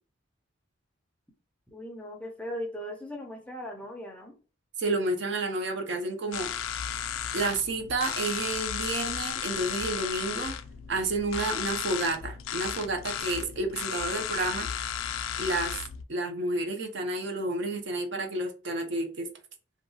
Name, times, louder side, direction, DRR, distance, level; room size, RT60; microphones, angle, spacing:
voice 1, 1.7-4.4, equal, 5° left, 0.4 m, -38 dB
voice 2, 4.8-6.5 7.3-10.6 10.9-14.7 15.4-15.8 16.1-19.3, right 2 dB, 60° right, 0.5 m, -30 dB
sound 1, 6.3-16.0, left 9 dB, 75° left, 0.3 m, -34 dB
2.8 x 2.2 x 2.7 m
head